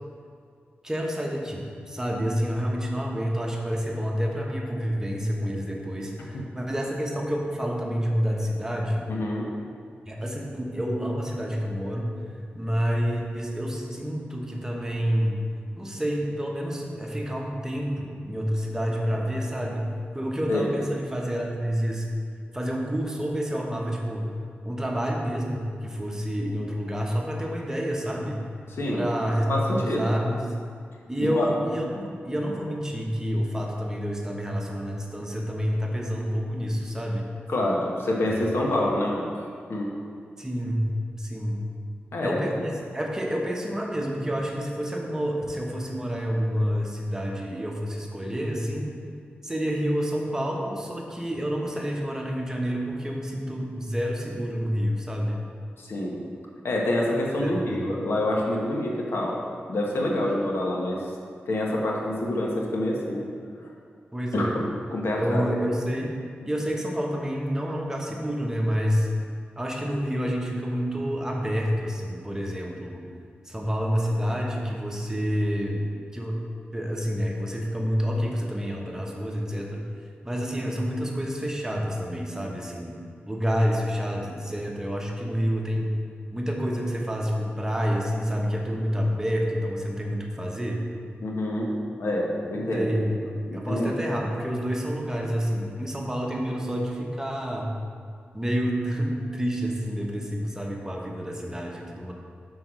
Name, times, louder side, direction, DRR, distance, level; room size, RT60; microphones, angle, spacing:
voice 1, 0.8-9.1 10.0-12.1 12.5-15.4 15.7-22.1 22.5-24.3 24.6-28.4 28.9-30.5 31.1-37.3 38.3-38.6 40.4-40.9 41.2-41.6 42.2-48.9 49.4-55.4 57.4-57.9 64.1-64.6 65.2-66.1 66.4-69.1 69.6-73.0 73.4-75.8 76.1-76.4 76.7-79.8 80.2-82.9 83.3-85.9 86.3-90.8 92.7-93.1 93.5-97.7 98.3-102.1, equal, 15° right, -1 dB, 1.2 m, -28 dB
voice 2, 9.1-9.5 20.5-20.7 28.7-29.1 29.5-30.0 31.2-31.5 37.5-39.3 39.7-39.9 42.1-42.4 55.8-56.2 56.6-59.4 59.7-61.0 61.5-63.3 64.3-64.5 64.9-65.4 91.2-91.7 92.0-92.9 93.5-93.9, left 1 dB, 75° left, -2 dB, 1.2 m, -26 dB
6.1 x 4.6 x 6.1 m, 2.2 s
cardioid pair, 65°, 4 cm